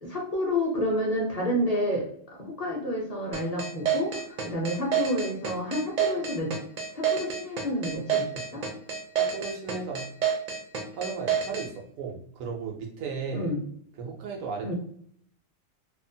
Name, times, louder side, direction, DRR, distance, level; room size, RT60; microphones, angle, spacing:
voice 1, 0.0-6.5 6.9-8.6 13.3-13.6 14.6-14.7, left 1 dB, 40° left, -2 dB, 0.6 m, -29 dB
sound 1, 3.3-11.7, right 7 dB, 65° right, 0.4 m, -28 dB
voice 2, 9.2-10.1 10.9-13.5 14.0-14.7, right 5 dB, 90° right, 1 dB, 1.1 m, -35 dB
2.8 x 2.1 x 2.6 m, 0.64 s
omnidirectional pair, 1.4 m